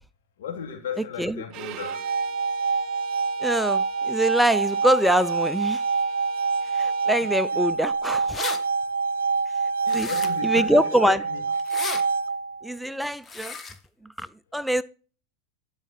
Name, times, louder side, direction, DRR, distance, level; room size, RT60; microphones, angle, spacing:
voice 1, 0.4-2.2 3.2-3.3 7.5-7.6 8.8-9.2 9.8-11.4 12.1-12.2, left 8 dB, 75° left, 2.3 m, -36 dB
Bowed string instrument, 1.5-7.5, right 12 dB, 45° right, 0.7 m, -44 dB
sound 1, 1.7-12.7, right 4 dB, 85° right, 0.5 m, -26 dB
voice 2, 3.4-5.8 6.7-8.5 9.9-10.1 10.4-11.2 12.6-13.6 14.2-14.3 14.5-14.8, right 1 dB, ahead, 0.4 m, -24 dB
sound 2, 8.3-8.6 9.9-10.5 11.6-12.0 13.2-13.8, left 5 dB, 25° left, 1.3 m, -33 dB
12.0 x 4.8 x 4.2 m
hypercardioid pair, 105°, 0 cm